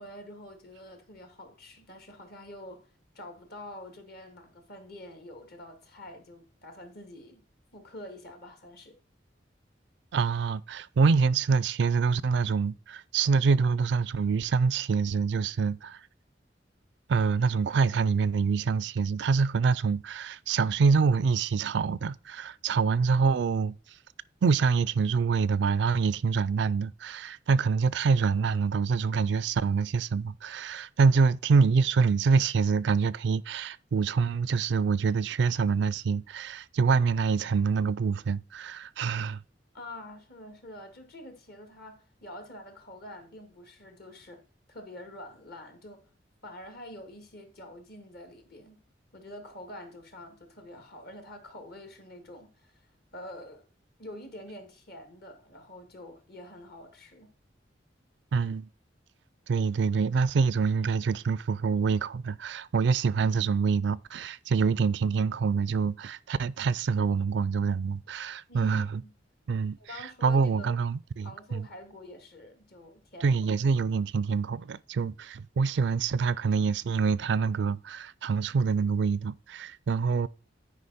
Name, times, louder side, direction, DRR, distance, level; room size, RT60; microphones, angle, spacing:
voice 1, 0.0-2.9 3.1-7.4 7.7-9.0 39.7-44.4 44.7-46.0 46.4-48.8 49.1-53.7 54.0-57.3 68.5-69.1 69.8-70.8 71.2-73.4, left 1 dB, 55° left, 2.0 m, -46 dB
voice 2, 10.1-16.0 17.1-23.7 24.4-39.4 58.3-58.7 59.5-69.0 69.5-69.8 70.2-71.7 73.2-80.3, right 5 dB, 70° right, 0.4 m, -26 dB
9.8 x 5.0 x 4.2 m
head